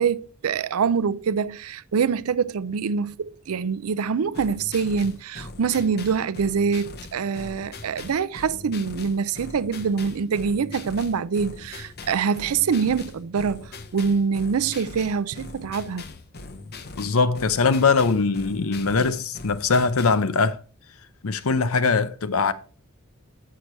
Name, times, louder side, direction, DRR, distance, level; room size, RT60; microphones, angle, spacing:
voice 1, 0.0-16.0, right 6 dB, 90° right, 0.5 m, -25 dB
sound 1, 4.3-20.3, left 3 dB, 50° left, 0.8 m, -41 dB
voice 2, 17.0-20.6 21.2-22.5, left 4 dB, 80° left, 0.7 m, -21 dB
8.0 x 6.6 x 4.3 m
head